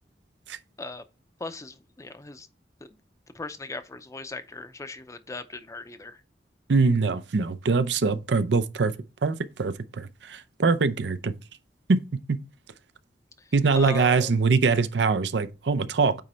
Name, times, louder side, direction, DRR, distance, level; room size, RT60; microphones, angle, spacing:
voice 1, 1.4-2.5 3.3-6.2 13.8-14.3, left 3 dB, 20° left, 0.6 m, -38 dB
voice 2, 6.7-8.9 9.2-11.3 11.9-12.0 12.3-12.4 13.5-16.2, right 4 dB, 75° right, 0.5 m, -23 dB
9.0 x 3.2 x 4.3 m
head